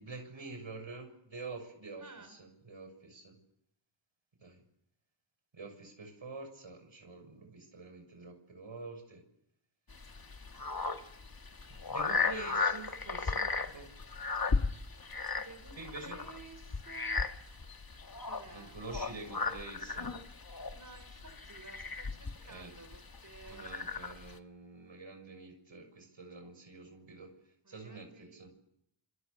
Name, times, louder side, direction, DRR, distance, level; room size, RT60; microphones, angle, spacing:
voice 1, 0.0-3.4 4.4-4.6 5.5-9.2 11.7-13.9 15.8-16.2 18.5-20.1 22.5-22.7 23.5-27.3 27.7-28.5, right 3 dB, 80° right, 6 dB, 6.6 m, -47 dB
voice 2, 2.0-2.4 15.4-17.2 17.7-17.8 18.2-18.8 20.7-23.9 27.6-28.5, right 3 dB, 40° right, 8 dB, 4.8 m, -54 dB
sound 1, 9.9-24.4, left 4 dB, 50° left, 1.9 m, -36 dB
26.5 x 26.0 x 7.1 m, 0.78 s
cardioid pair, 40°, 46 cm